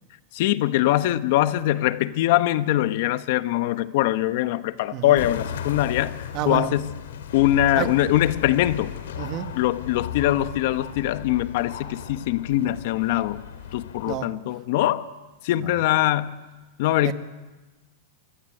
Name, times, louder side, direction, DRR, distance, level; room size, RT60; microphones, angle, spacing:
voice 1, 0.3-7.0 7.3-8.9 9.6-13.4 13.7-15.1 15.4-16.4 16.8-17.1, left 14 dB, 55° left, 11 dB, 1.3 m, -22 dB
voice 2, 4.9-5.3 6.3-6.7 7.8-7.9 9.2-9.5 14.1-14.3 15.6-15.8 17.0-17.1, right 12 dB, 35° right, 7 dB, 2.0 m, -30 dB
sound 1, 5.2-14.2, left 9 dB, 85° left, 3.2 m, -36 dB
26.5 x 23.0 x 9.3 m, 1.2 s
supercardioid pair, 155°, 0 cm